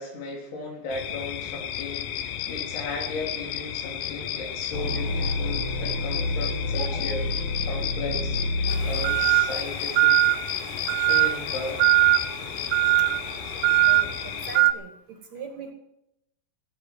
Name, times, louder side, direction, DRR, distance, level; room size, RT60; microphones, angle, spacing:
voice 1, 0.0-7.2 7.7-10.4 11.1-11.9, left 3 dB, 85° left, 1 dB, 5.6 m, -36 dB
sound 1, 0.9-14.6, left 10 dB, 70° left, 2.3 m, -33 dB
sound 2, 4.7-9.7, left 1 dB, 45° left, 1.9 m, -29 dB
sound 3, 8.7-14.7, right 18 dB, 90° right, 3.0 m, -22 dB
voice 2, 13.9-14.9 15.3-15.7, right 4 dB, 50° right, 5 dB, 2.8 m, -39 dB
17.0 x 8.9 x 9.2 m, 0.81 s
omnidirectional pair, 4.5 m